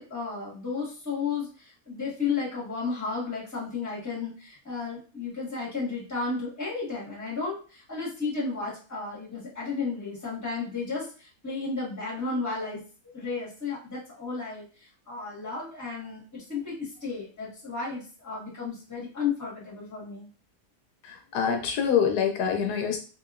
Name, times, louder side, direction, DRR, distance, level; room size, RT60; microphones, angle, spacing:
voice 1, 0.0-12.8 13.1-20.3, left 4 dB, 10° left, -5 dB, 1.2 m, -33 dB
voice 2, 21.0-23.0, left 7 dB, 80° left, 3 dB, 1.1 m, -25 dB
3.3 x 2.8 x 2.4 m, 0.38 s
omnidirectional pair, 1.7 m